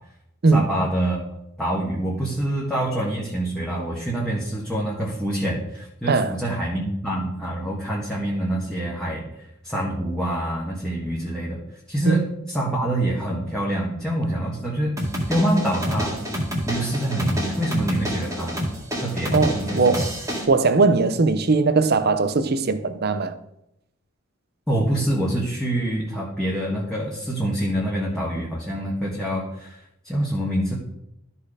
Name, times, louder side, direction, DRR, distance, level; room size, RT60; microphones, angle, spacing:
voice 1, 0.5-1.2 1.6-11.6 11.9-15.0 15.3-16.1 16.7-18.6 19.0-20.0 24.7-29.8 30.0-30.7, right 1 dB, 5° left, 1.4 m, -26 dB
sound 1, 15.0-20.4, equal, 15° right, 1.9 m, -28 dB
voice 2, 19.3-20.1 20.5-23.3, right 3 dB, 50° right, 0.7 m, -19 dB
12.5 x 4.3 x 5.0 m
head